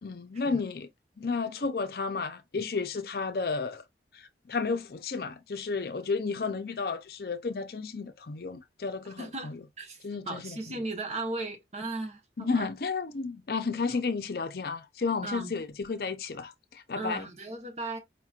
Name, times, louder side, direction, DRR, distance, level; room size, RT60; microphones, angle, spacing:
voice 1, 0.0-0.9 1.2-3.8 4.1-9.6 10.0-10.6 12.4-17.3, left 4 dB, 55° left, 0.5 m, -32 dB
voice 2, 9.2-12.7 13.9-14.1 15.2-15.5 16.9-18.0, right 2 dB, 40° right, 1.1 m, -37 dB
4.8 x 2.9 x 2.4 m
head